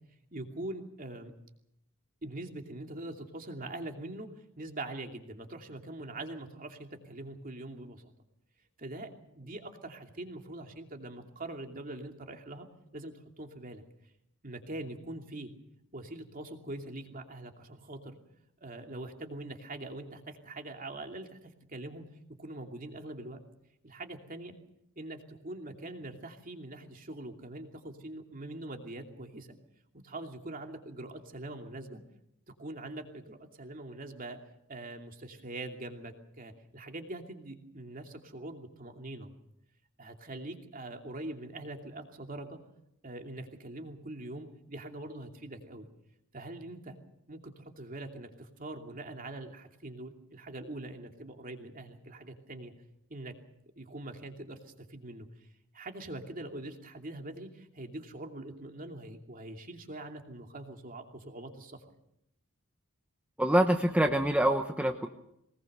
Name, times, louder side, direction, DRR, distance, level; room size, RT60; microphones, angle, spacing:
voice 1, 0.3-1.3 2.2-4.3 4.6-8.0 8.8-12.7 12.9-13.8 14.4-15.5 15.9-18.2 18.6-22.1 22.4-23.4 23.8-24.5 25.0-29.5 30.0-32.0 32.6-34.4 34.7-39.3 40.0-42.6 43.0-45.9 46.3-47.0 47.3-52.7 53.1-53.4 53.8-55.3 55.7-61.8, right 2 dB, 40° right, 4 dB, 2.7 m, -43 dB
voice 2, 63.4-65.1, right 1 dB, 5° right, 4 dB, 1.0 m, -25 dB
22.0 x 20.0 x 6.7 m, 0.78 s
head